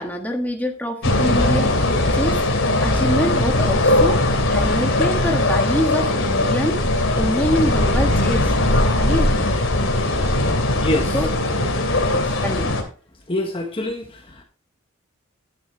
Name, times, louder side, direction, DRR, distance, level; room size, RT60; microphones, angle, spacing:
voice 1, 0.0-1.8 2.1-2.4 2.8-4.2 4.5-6.8 7.2-8.5 8.9-9.4 11.1-11.3 12.1-12.8, equal, 10° left, 3 dB, 1.5 m, -25 dB
sound 1, 1.0-12.8, left 1 dB, 65° left, 2.9 m, -19 dB
voice 2, 10.8-11.2 13.3-14.4, left 1 dB, 25° left, 3 dB, 1.3 m, -25 dB
11.5 x 9.4 x 3.3 m, 0.37 s
head